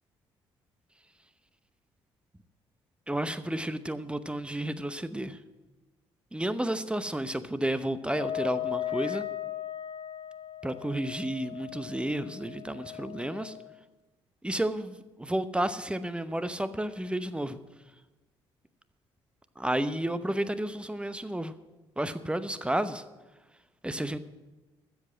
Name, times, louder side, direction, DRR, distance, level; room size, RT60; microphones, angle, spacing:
voice 1, 3.1-5.4 6.3-9.2 10.6-13.5 14.4-17.6 19.6-21.5 22.0-23.0 23.8-24.2, right 1 dB, 10° right, 13 dB, 0.8 m, -31 dB
Wind instrument woodwind instrument, 8.0-13.7, left 11 dB, 45° left, 1.9 m, -37 dB
13.0 x 7.6 x 7.7 m, 1.2 s
figure-of-eight pair, 45°, 13 cm